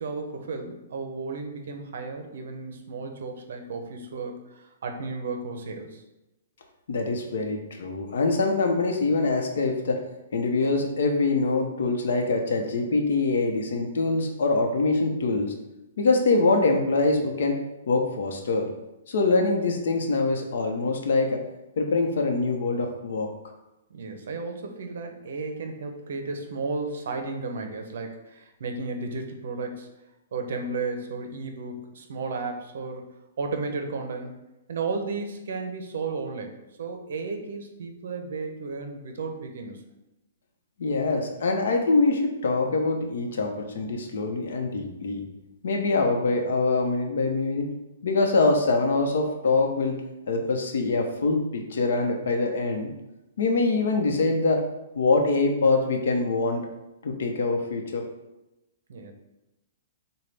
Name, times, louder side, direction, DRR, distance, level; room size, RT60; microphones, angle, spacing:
voice 1, 0.0-6.0 23.9-29.9 30.3-33.1 33.4-34.4 34.7-39.8 58.9-59.1, right 4 dB, 65° right, 5 dB, 0.7 m, -34 dB
voice 2, 6.9-10.0 10.3-15.5 16.0-17.6 17.9-18.7 19.1-21.4 21.8-23.3 40.8-45.2 45.6-47.7 48.0-50.0 50.3-52.9 53.4-54.6 55.0-56.6 57.0-58.0, left 3 dB, 70° left, 3 dB, 0.8 m, -24 dB
6.8 x 2.3 x 3.4 m, 0.96 s
hypercardioid pair, 165°, 0 cm